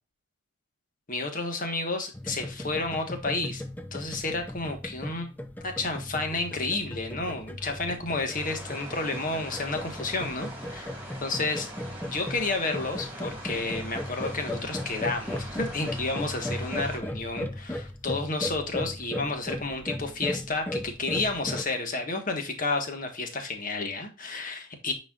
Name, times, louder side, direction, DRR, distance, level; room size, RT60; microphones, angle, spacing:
voice 1, 1.1-3.6 3.9-5.3 5.6-10.9 11.2-11.7 12.0-24.9, left 3 dB, 40° left, 1.4 m, -31 dB
sound 1, 2.1-21.6, left 1 dB, 10° left, 0.5 m, -37 dB
sound 2, 8.3-17.0, right 1 dB, 10° right, 2.4 m, -43 dB
9.0 x 4.3 x 2.4 m
head